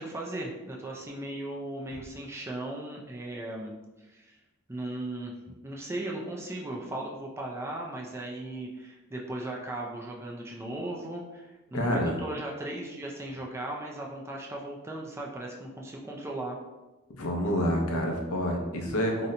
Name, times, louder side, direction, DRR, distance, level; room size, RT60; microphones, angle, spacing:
voice 1, 0.0-4.4 4.7-16.6, right 1 dB, 10° right, -1 dB, 0.3 m, -37 dB
voice 2, 11.7-12.2 17.1-19.3, equal, 80° left, 1 dB, 0.6 m, -28 dB
2.8 x 2.1 x 3.7 m, 1.1 s
head